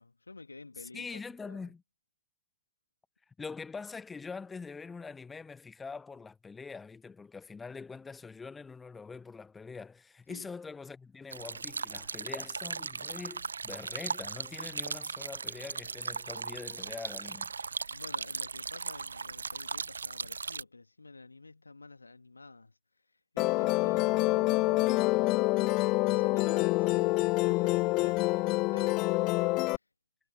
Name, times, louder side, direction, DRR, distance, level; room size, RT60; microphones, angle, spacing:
voice 1, 0.0-1.7 10.3-10.5 17.9-22.8 23.1-25.5 26.1-29.4, left 3 dB, 80° left, 2.2 m, -51 dB
voice 2, 0.8-1.8 3.4-17.5, left 4 dB, 15° left, 1.5 m, -44 dB
sound 1, 11.3-20.6, right 5 dB, 75° right, 1.1 m, -38 dB
Musical instrument, 23.4-29.8, left 22 dB, 40° left, 0.4 m, -27 dB
figure-of-eight pair, 90°, 0 cm